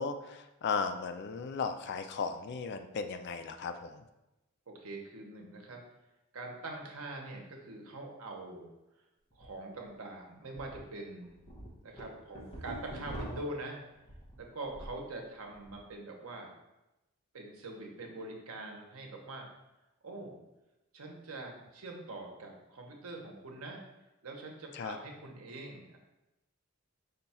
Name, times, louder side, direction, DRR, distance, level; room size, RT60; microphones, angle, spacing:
voice 1, 0.0-4.0 24.7-25.0, left 5 dB, 50° left, 8 dB, 0.3 m, -36 dB
voice 2, 4.7-5.8 6.3-8.7 9.3-11.4 11.8-13.8 14.4-16.5 17.3-19.5 20.0-20.4 20.9-23.8 24.2-26.0, right 2 dB, 75° right, 1 dB, 0.8 m, -44 dB
sound 1, 9.3-9.5 9.9-10.0 10.6-10.8 11.2-15.0 15.4-15.8, right 1 dB, 30° left, 0.8 m, -44 dB
5.2 x 2.3 x 4.1 m, 0.96 s
head